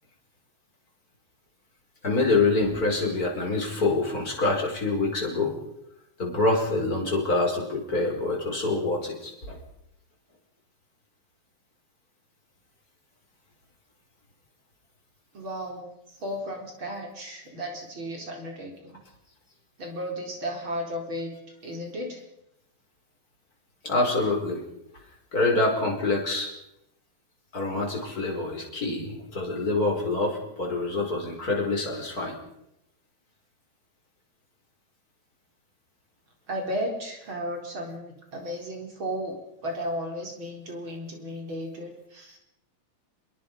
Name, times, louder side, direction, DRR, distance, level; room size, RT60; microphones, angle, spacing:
voice 1, 2.0-5.5 6.2-9.6 23.8-24.6 25.3-26.5 27.5-32.4, left 3 dB, 25° left, 0 dB, 5.3 m, -26 dB
voice 2, 15.3-19.0 19.8-21.3 21.6-22.2 36.5-42.4, equal, 35° right, 1 dB, 5.0 m, -34 dB
26.0 x 21.5 x 5.6 m, 0.83 s
omnidirectional pair, 4.0 m